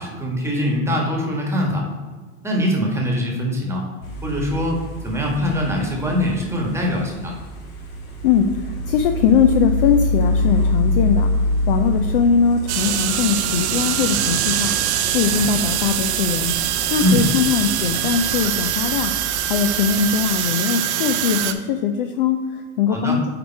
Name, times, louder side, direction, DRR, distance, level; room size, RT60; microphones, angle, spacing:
voice 1, 0.0-1.8 2.4-3.8 4.2-4.8 5.0-7.3 17.0-17.3 22.9-23.2, equal, 5° right, -1 dB, 1.3 m, -22 dB
sound 1, 4.0-20.2, left 1 dB, 65° left, 2.1 m, -27 dB
voice 2, 8.2-19.1 19.5-23.3, left 7 dB, 40° left, 6 dB, 0.4 m, -21 dB
sound 2, 12.7-21.5, right 11 dB, 50° right, 0.7 m, -23 dB
8.6 x 3.5 x 4.4 m, 1.4 s
hypercardioid pair, 120°, 44 cm